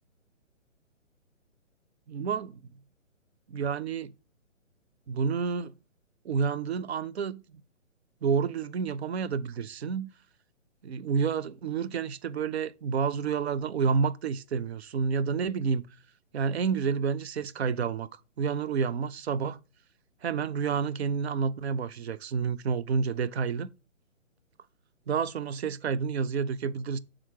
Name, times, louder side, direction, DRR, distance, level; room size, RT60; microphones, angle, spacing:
voice 1, 2.1-2.6 3.5-4.1 5.1-5.7 6.2-7.4 8.2-10.1 10.8-15.9 16.3-18.1 18.4-19.6 20.2-23.7 25.1-27.0, right 6 dB, 55° right, 0.5 m, -29 dB
5.9 x 3.7 x 4.5 m
figure-of-eight pair, 135°, 39 cm